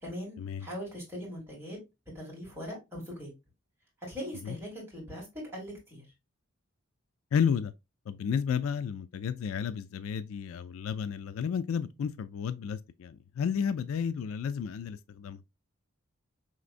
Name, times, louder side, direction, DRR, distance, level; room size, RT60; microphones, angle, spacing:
voice 1, 0.0-1.8 2.1-3.3 4.1-6.0, equal, 10° right, 2.3 m, -40 dB
voice 2, 7.3-7.7 8.1-15.4, left 7 dB, 70° left, 0.3 m, -32 dB
5.1 x 3.4 x 2.4 m
head